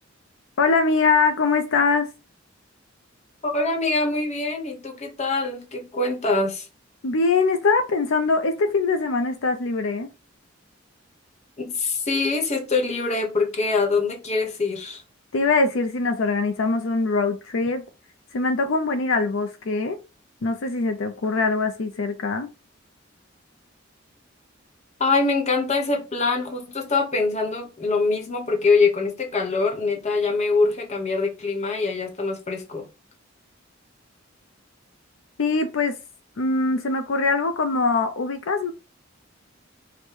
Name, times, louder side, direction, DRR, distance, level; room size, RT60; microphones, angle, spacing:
voice 1, 0.6-2.1 7.0-10.1 15.3-17.8 18.3-20.0 20.4-22.5 35.4-35.9 36.4-38.7, left 3 dB, 75° left, 0.5 m, -22 dB
voice 2, 3.4-6.7 11.6-15.0 25.0-32.8, left 3 dB, 35° left, 1.0 m, -24 dB
5.0 x 2.1 x 4.4 m
head